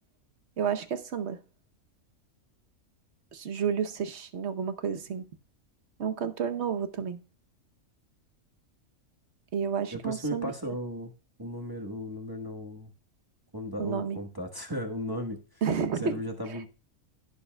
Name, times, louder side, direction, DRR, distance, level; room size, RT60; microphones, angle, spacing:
voice 1, 0.6-1.4 3.3-5.3 6.0-7.2 9.5-10.5 13.8-14.2 15.6-16.2 16.5-16.6, right 7 dB, 55° right, 1.1 m, -31 dB
voice 2, 9.9-11.1 11.4-12.9 13.5-15.4 16.0-16.7, equal, 15° right, 1.1 m, -35 dB
16.0 x 6.9 x 2.2 m
omnidirectional pair, 1.5 m